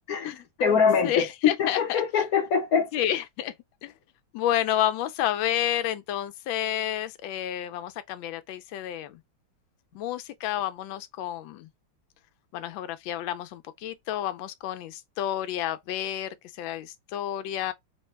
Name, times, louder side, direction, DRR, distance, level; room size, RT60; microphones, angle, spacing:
voice 1, 0.1-2.9, left 6 dB, 60° left, 1.1 m, -24 dB
voice 2, 1.0-2.0 2.9-3.5 3.8-3.9 4.3-9.2 9.9-11.7 12.5-17.7, left 11 dB, 85° left, 1.3 m, -30 dB
3.9 x 2.1 x 4.3 m
omnidirectional pair, 2.1 m